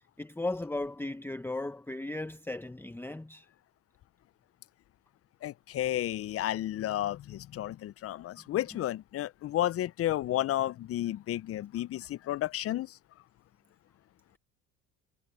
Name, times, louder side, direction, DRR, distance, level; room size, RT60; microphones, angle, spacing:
voice 1, 0.0-3.5, left 2 dB, 5° left, 1.1 m, -36 dB
voice 2, 5.4-13.0, left 13 dB, 45° left, 0.6 m, -32 dB
supercardioid pair, 85°, 34 cm